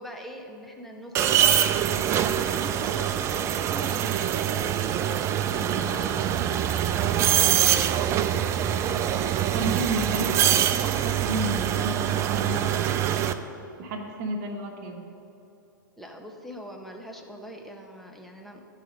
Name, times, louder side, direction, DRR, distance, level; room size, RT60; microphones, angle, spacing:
voice 1, 0.0-6.2 6.9-8.2 16.0-18.6, equal, ahead, 1 dB, 0.8 m, -42 dB
sound 1, 1.1-13.3, right 10 dB, 25° right, 0.3 m, -24 dB
voice 2, 9.5-12.0 12.3-13.0 13.8-15.0, right 2 dB, 45° right, 2 dB, 1.0 m, -32 dB
11.5 x 4.1 x 5.1 m, 2.8 s
figure-of-eight pair, 110°, 11 cm